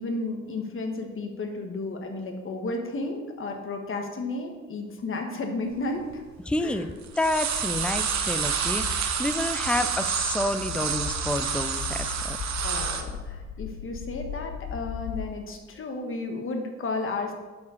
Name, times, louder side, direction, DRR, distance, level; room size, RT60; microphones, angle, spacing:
voice 1, 0.0-6.2 6.6-6.9 12.6-17.3, left 2 dB, 45° left, 3 dB, 1.4 m, -33 dB
sound 1, 5.8-5.9 6.1-6.8 7.0-13.0, right 7 dB, 65° right, 1.0 m, -29 dB
voice 2, 6.5-12.4, left 2 dB, 5° left, 10 dB, 0.5 m, -29 dB
sound 2, 7.5-15.2, left 6 dB, 75° left, 0.7 m, -38 dB
8.4 x 4.8 x 6.4 m, 1.3 s
cardioid pair, 95°, 30 cm